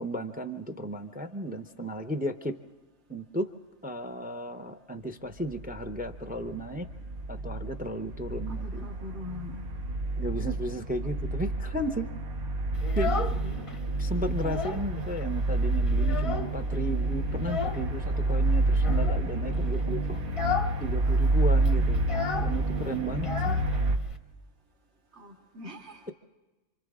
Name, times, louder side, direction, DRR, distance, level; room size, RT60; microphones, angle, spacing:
voice 1, 0.0-2.6 3.1-3.5 3.8-6.9 7.3-8.9 10.2-12.1 12.9-13.4 14.0-20.2 20.8-22.0 22.4-23.6, right 1 dB, 10° right, 8 dB, 0.4 m, -34 dB
sound 1, 5.4-24.0, right 2 dB, 70° right, 1.8 m, -28 dB
voice 2, 8.5-9.7 11.0-11.1 13.0-13.7 25.1-26.1, left 3 dB, 45° right, -4 dB, 2.6 m, -43 dB
Child speech kid speaking, 12.7-13.8 14.1-14.9 15.2-15.3 15.6-16.7 17.4-17.9 18.7-19.2 19.7-19.9 20.2-20.8 21.0-21.1 21.4-24.2, left 5 dB, 30° left, 0.7 m, -34 dB
28.0 x 25.5 x 3.7 m, 1.1 s
omnidirectional pair, 1.6 m